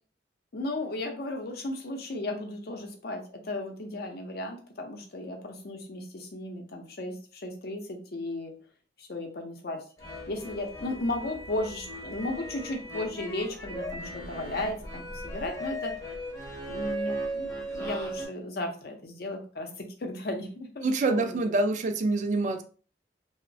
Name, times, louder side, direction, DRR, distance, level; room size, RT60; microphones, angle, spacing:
voice 1, 0.5-8.5 9.0-15.9 16.7-21.5, left 2 dB, 60° left, 4 dB, 0.6 m, -35 dB
sound 1, 10.0-18.3, right 1 dB, 20° left, 0.7 m, -37 dB
voice 2, 20.8-22.6, right 2 dB, 45° right, 8 dB, 0.3 m, -26 dB
2.9 x 2.0 x 2.6 m, 0.39 s
head